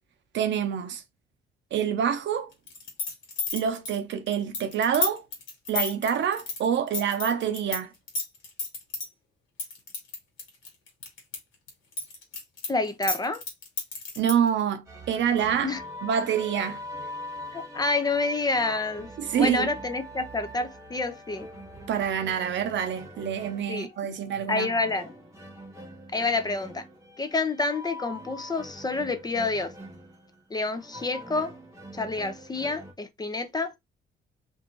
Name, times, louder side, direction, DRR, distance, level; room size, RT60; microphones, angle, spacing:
voice 1, 0.3-1.0 1.7-2.5 3.5-5.2 5.7-7.9 14.2-15.8 16.0-16.8 19.2-19.7 21.9-24.7, right 8 dB, 65° right, 0.6 m, -26 dB
sound 1, 2.7-7.8 8.1-9.1 9.6-11.4 11.7-14.5, left 4 dB, 80° left, 1.4 m, -31 dB
voice 2, 12.7-13.4 15.6-15.8 17.5-21.5 23.7-24.1 24.5-25.1 26.1-26.8 27.2-29.7 30.5-31.5 31.9-33.8, left 3 dB, 20° left, 0.4 m, -28 dB
sound 2, 14.9-32.9, equal, 15° right, 1.0 m, -43 dB
2.6 x 2.4 x 2.8 m
cardioid pair, 90°, 20 cm